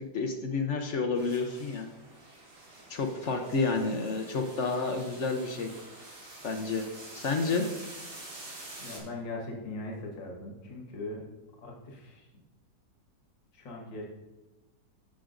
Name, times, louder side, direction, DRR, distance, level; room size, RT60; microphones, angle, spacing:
voice 1, 0.0-1.9 2.9-5.7 6.4-6.9 7.1-7.7, left 4 dB, 60° left, 5 dB, 0.7 m, -30 dB
sound 1, 1.1-9.0, right 2 dB, 75° right, 3.1 m, -47 dB
voice 2, 8.8-11.2 11.6-12.3 13.5-14.0, left 2 dB, 80° left, -1 dB, 2.2 m, -40 dB
15.0 x 6.3 x 2.5 m, 1.1 s
omnidirectional pair, 2.0 m